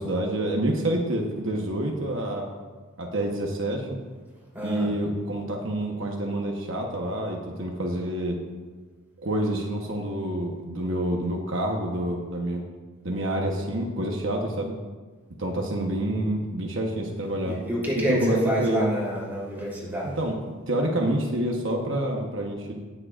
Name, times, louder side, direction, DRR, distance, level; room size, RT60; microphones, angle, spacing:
voice 1, 0.0-2.5 3.0-4.0 4.6-8.4 9.2-12.6 13.0-14.7 15.4-17.6 17.9-18.8 20.2-20.4 20.7-22.7, right 1 dB, 65° right, 0 dB, 1.1 m, -27 dB
voice 2, 4.5-4.9 17.4-20.2, equal, 10° right, -7 dB, 3.4 m, -27 dB
18.5 x 7.7 x 2.5 m, 1.4 s
head